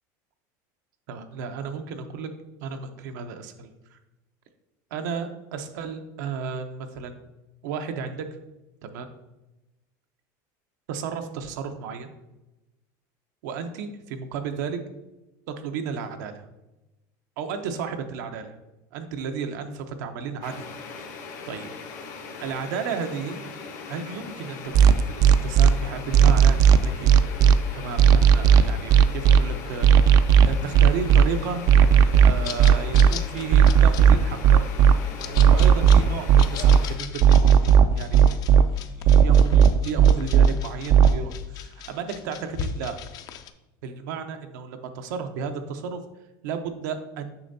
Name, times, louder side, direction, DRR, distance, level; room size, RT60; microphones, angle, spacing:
voice 1, 1.1-2.3 2.6-4.0 4.9-7.2 7.6-8.3 8.9-9.1 10.9-12.1 13.4-14.8 15.5-16.4 17.4-18.5 18.9-20.7 20.9-21.7 22.4-23.4 23.9-25.0 25.4-27.1 27.7-30.2 30.4-31.6 32.2-34.7 35.2-43.0 43.8-46.0 46.4-47.3, right 6 dB, 80° right, 6 dB, 0.8 m, -33 dB
sound 1, 20.4-37.0, left 4 dB, 85° left, 1.2 m, -40 dB
sound 2, 24.7-25.7 26.1-27.5 28.0-29.4 29.8-31.2 31.7-33.1 33.5-34.9 35.4-36.8 37.2-38.6 39.0-40.5 40.9-41.2, right 8 dB, 40° right, 0.3 m, -14 dB
sound 3, 32.4-43.5, left 8 dB, 40° left, 0.5 m, -38 dB
7.0 x 5.8 x 2.7 m, 1.0 s
supercardioid pair, 140°, 10 cm